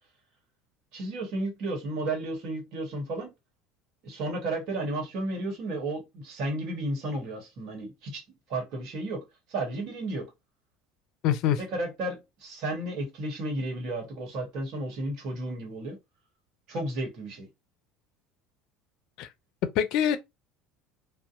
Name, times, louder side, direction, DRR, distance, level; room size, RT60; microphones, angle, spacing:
voice 1, 0.9-3.3 4.0-8.2 8.5-9.2 9.5-10.3 11.7-16.0 16.7-17.5, right 2 dB, 60° right, 1.2 m, -33 dB
voice 2, 11.2-11.6 19.2-19.3 19.7-20.2, left 10 dB, 60° left, 0.4 m, -24 dB
2.6 x 2.1 x 2.4 m
hypercardioid pair, 70°, 0 cm